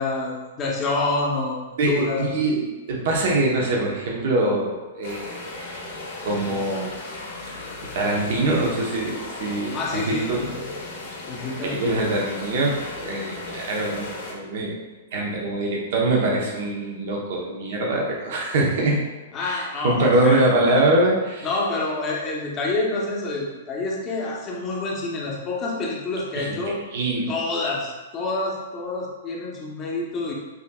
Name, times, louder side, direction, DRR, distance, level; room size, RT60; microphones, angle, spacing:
voice 1, 0.0-2.2 9.7-10.7 11.3-12.0 19.3-20.4 21.4-26.8 27.3-30.3, left 3 dB, 25° left, -3 dB, 0.8 m, -27 dB
voice 2, 1.8-5.3 6.2-6.9 7.9-10.5 11.6-14.7 15.1-19.0 19.4-21.5 26.3-26.6 26.9-27.3, right 2 dB, 60° right, -2 dB, 0.9 m, -23 dB
sound 1, 5.0-14.3, left 2 dB, 70° left, 1.3 m, -36 dB
5.9 x 2.8 x 2.3 m, 1.2 s
hypercardioid pair, 140°, 0 cm